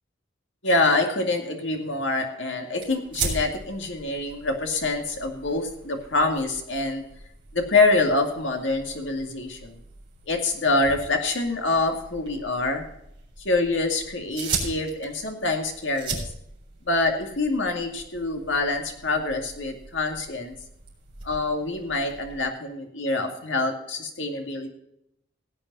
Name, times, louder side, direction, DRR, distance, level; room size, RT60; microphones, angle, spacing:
voice 1, 0.6-7.0 7.5-9.8 10.3-12.8 13.4-16.2 16.9-20.5 21.2-24.7, left 2 dB, 70° left, 4 dB, 2.3 m, -25 dB
sound 1, 2.8-22.4, right 4 dB, 25° right, 4.0 m, -39 dB
17.0 x 8.9 x 4.1 m, 0.79 s
head